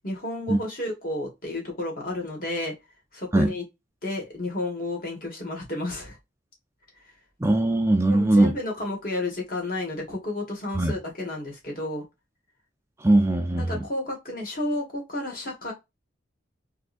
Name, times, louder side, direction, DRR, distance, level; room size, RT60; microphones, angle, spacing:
voice 1, 0.0-2.7 3.1-3.6 4.0-6.2 8.1-12.0 13.6-15.7, left 2 dB, 50° left, 1.7 m, -31 dB
voice 2, 7.4-8.5 10.8-10.9 13.0-13.8, right 1 dB, 15° right, 0.4 m, -20 dB
3.4 x 3.2 x 2.5 m
head